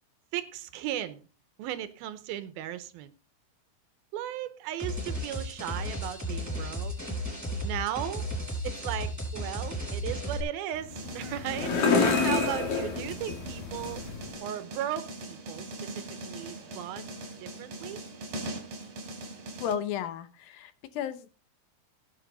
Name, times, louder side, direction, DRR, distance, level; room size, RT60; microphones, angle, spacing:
voice 1, 0.3-1.3 1.6-3.1 4.1-7.0 7.6-8.3 8.6-14.1 14.4-18.0, right 12 dB, 75° right, 2.6 m, -36 dB
sound 1, 4.8-10.4, equal, 5° right, 5.6 m, -34 dB
sound 2, 10.7-14.3, left 4 dB, 45° left, 2.6 m, -28 dB
sound 3, 10.9-19.8, right 2 dB, 45° right, 3.2 m, -41 dB
voice 2, 19.6-21.3, left 9 dB, 75° left, 2.5 m, -34 dB
17.5 x 7.8 x 4.0 m
omnidirectional pair, 4.5 m